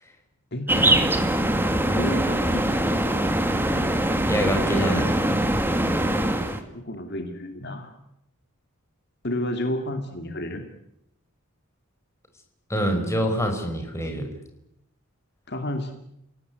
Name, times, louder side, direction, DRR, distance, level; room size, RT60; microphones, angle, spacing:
voice 1, 0.5-1.1 2.0-2.7 6.7-7.9 9.2-10.6 15.5-15.9, left 1 dB, 50° left, 6 dB, 2.5 m, -30 dB
sound 1, 0.7-6.6, right 1 dB, 10° right, 2.2 m, -23 dB
voice 2, 4.2-5.2 12.7-14.3, equal, 15° left, 4 dB, 5.1 m, -25 dB
29.0 x 18.0 x 9.5 m, 0.79 s
head